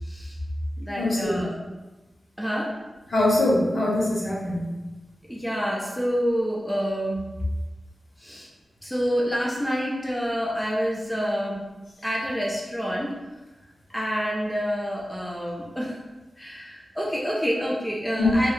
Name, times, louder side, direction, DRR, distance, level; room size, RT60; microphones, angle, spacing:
voice 1, 0.0-0.4 0.8-1.6 2.4-2.7 5.3-7.3 8.2-8.5 8.8-11.6 12.0-13.1 13.9-16.0 16.4-18.5, equal, 5° left, -3 dB, 0.3 m, -27 dB
voice 2, 1.0-1.5 3.1-4.6 18.2-18.3, left 2 dB, 60° left, -4 dB, 0.7 m, -23 dB
2.7 x 2.0 x 2.4 m, 1.1 s
wide cardioid pair, 135°, 0 cm